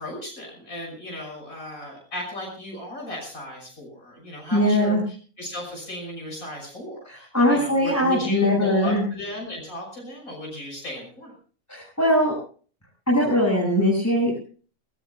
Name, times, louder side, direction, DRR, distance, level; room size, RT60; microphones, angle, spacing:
voice 1, 0.0-11.3, left 1 dB, 70° left, 0 dB, 6.7 m, -35 dB
voice 2, 4.5-5.0 7.1-9.0 11.7-12.4 13.1-14.4, equal, 10° left, -2 dB, 6.1 m, -21 dB
22.5 x 21.0 x 2.2 m, 0.40 s
omnidirectional pair, 1.5 m